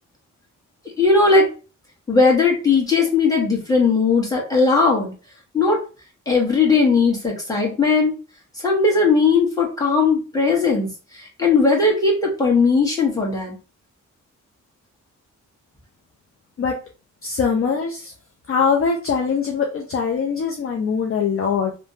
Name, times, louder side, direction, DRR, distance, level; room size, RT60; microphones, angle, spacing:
voice 1, 1.0-1.5 2.1-5.1 5.5-5.8 6.3-8.1 8.6-10.9 11.1-13.5, left 4 dB, 10° left, -2 dB, 1.3 m, -18 dB
voice 2, 17.2-18.1 18.5-21.8, left 6 dB, 45° left, 0 dB, 0.5 m, -22 dB
3.2 x 2.1 x 2.7 m, 0.35 s
cardioid pair, 80°, 31 cm